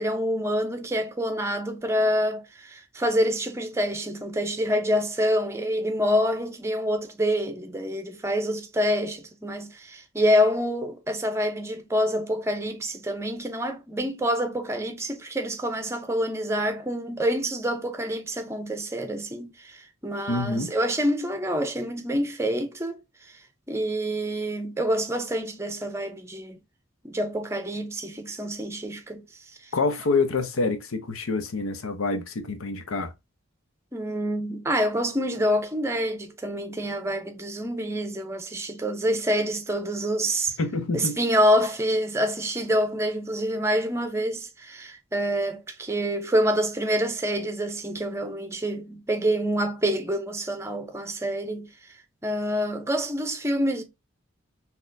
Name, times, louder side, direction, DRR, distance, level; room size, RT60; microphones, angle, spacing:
voice 1, 0.0-23.0 23.3-23.4 23.7-26.6 27.0-29.2 33.9-40.6 40.9-51.7 52.2-53.8, equal, 15° right, 0.6 m, -27 dB
voice 2, 20.3-20.7 29.7-33.1 40.6-41.2, left 3 dB, 85° left, 0.7 m, -26 dB
4.0 x 2.9 x 2.6 m
head